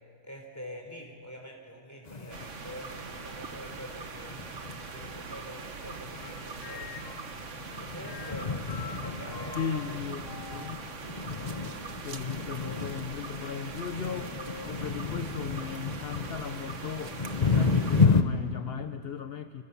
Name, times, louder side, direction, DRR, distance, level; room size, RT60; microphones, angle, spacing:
voice 1, 0.2-6.9 7.8-10.0, equal, 10° left, 2 dB, 4.2 m, -45 dB
sound 1, 2.0-18.2, left 4 dB, 30° left, 1.0 m, -32 dB
sound 2, 2.3-18.1, right 5 dB, 50° right, 1.5 m, -42 dB
sound 3, 6.2-7.3 7.7-10.9 11.3-11.9 12.6-13.0 13.5-13.7 14.3-14.7, left 7 dB, 75° left, 1.6 m, -46 dB
voice 2, 9.5-10.8 11.7-19.6, left 7 dB, 50° left, 8 dB, 0.8 m, -37 dB
30.0 x 27.5 x 7.1 m, 2.3 s
omnidirectional pair, 1.8 m